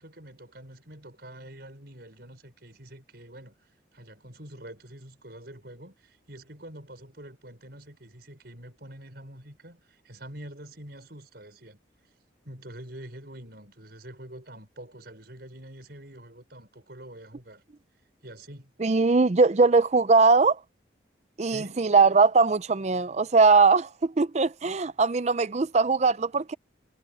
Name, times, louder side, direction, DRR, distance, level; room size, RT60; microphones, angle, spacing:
voice 1, 0.0-3.5 3.9-11.8 12.4-17.6 18.2-18.7 21.4-21.9, right 1 dB, 55° right, 5.8 m, -46 dB
voice 2, 18.8-20.6 21.4-26.5, right 4 dB, 35° right, 0.5 m, -21 dB
head